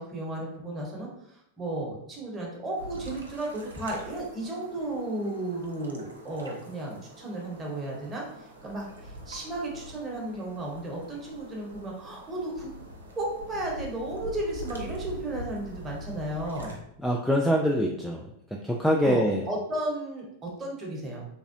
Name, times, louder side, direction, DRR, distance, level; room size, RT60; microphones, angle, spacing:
voice 1, 0.0-8.2 8.6-12.7 13.1-16.7 19.0-21.3, right 1 dB, 15° right, -3 dB, 1.1 m, -34 dB
sound 1, 2.8-16.8, equal, 75° right, 0.6 m, -44 dB
voice 2, 17.0-18.2 18.6-19.4, equal, ahead, -1 dB, 0.3 m, -24 dB
3.5 x 2.9 x 2.7 m, 0.75 s
figure-of-eight pair, 90°, 0 cm